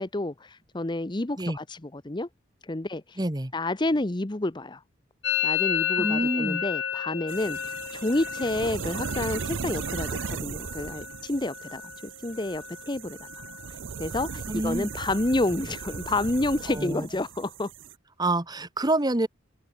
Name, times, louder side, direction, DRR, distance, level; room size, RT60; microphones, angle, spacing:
voice 1, 0.0-1.8 2.0-2.3 2.7-3.2 3.5-4.8 5.4-7.6 7.9-13.3 14.0-17.7, left 2 dB, 25° left, 0.8 m, -29 dB
voice 2, 3.2-3.5 6.0-6.6 14.5-14.9 16.7-17.1 18.2-19.3, right 1 dB, 20° right, 1.4 m, -27 dB
Musical instrument, 5.2-12.9 13.1-13.7 14.0-14.6 14.8-16.9, left 9 dB, 80° left, 1.7 m, -33 dB
sound 1, 7.3-17.9, right 6 dB, 65° right, 0.6 m, -37 dB
open air
head